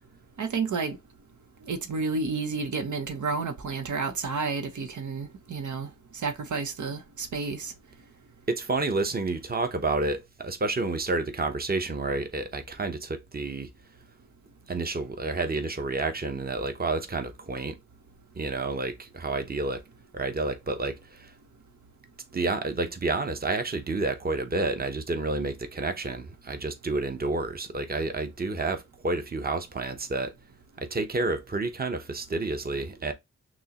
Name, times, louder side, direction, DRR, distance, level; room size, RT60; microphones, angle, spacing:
voice 1, 0.4-1.0 1.6-7.7, right 4 dB, 90° right, 0.8 m, -31 dB
voice 2, 8.5-13.7 14.7-17.8 18.3-19.8 20.1-21.3 22.3-30.3 30.8-33.1, right 3 dB, 30° right, 0.8 m, -30 dB
6.1 x 2.1 x 2.9 m
wide cardioid pair, 75°, 29 cm